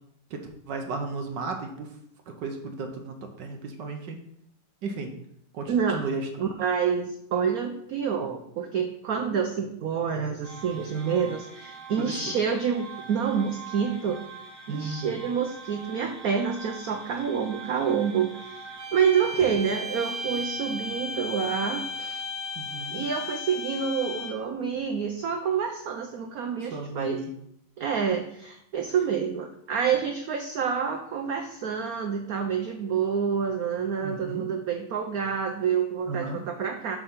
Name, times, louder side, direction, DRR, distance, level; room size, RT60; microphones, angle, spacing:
voice 1, 0.3-1.9 2.3-4.2 4.8-5.1 5.5-6.3 11.2-11.3 12.0-12.2 14.7-15.2 22.6-23.0 26.6-27.3 34.0-34.5 36.1-36.4, right 3 dB, 65° right, 4 dB, 1.3 m, -34 dB
voice 2, 5.7-6.0 6.4-14.2 14.7-22.2 22.9-27.2 27.8-37.0, right 7 dB, 85° right, 5 dB, 0.7 m, -28 dB
sound 1, 10.4-18.9, right 5 dB, 25° right, 2.3 m, -44 dB
sound 2, 18.8-24.5, left 2 dB, 50° right, 1.9 m, -35 dB
6.8 x 3.7 x 5.6 m, 0.71 s
omnidirectional pair, 2.3 m